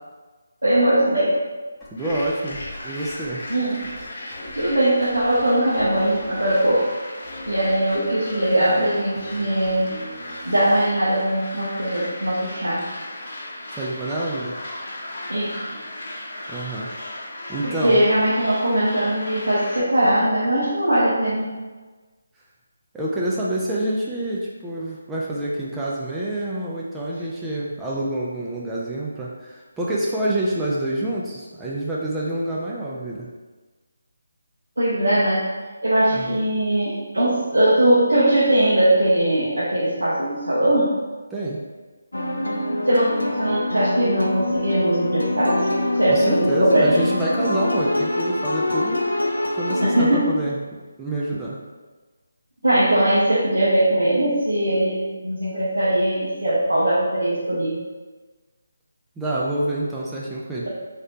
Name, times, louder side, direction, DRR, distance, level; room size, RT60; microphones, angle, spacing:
voice 1, 0.6-1.4 3.5-3.9 4.5-6.9 7.5-9.9 10.4-12.8 15.3-15.8 17.6-21.6 34.8-35.5 35.8-41.0 42.9-47.0 49.8-50.3 52.6-57.8, right 1 dB, 80° right, -9 dB, 0.8 m, -20 dB
sound 1, 1.8-4.8 5.0-6.8 7.2-10.9, equal, 5° left, 0.8 m, -40 dB
voice 2, 1.9-3.4 13.7-14.6 16.5-16.9 17.5-18.0 22.9-33.3 36.1-36.4 41.3-41.6 46.1-49.0 49.5-50.6 51.0-51.6 59.2-60.7, right 1 dB, 10° right, -6 dB, 0.3 m, -27 dB
sound 2, 2.0-19.8, left 1 dB, 50° left, 0.8 m, -36 dB
sound 3, 42.1-50.2, left 2 dB, 85° left, 0.4 m, -25 dB
3.3 x 2.7 x 2.6 m, 1.3 s
figure-of-eight pair, 155°, 0 cm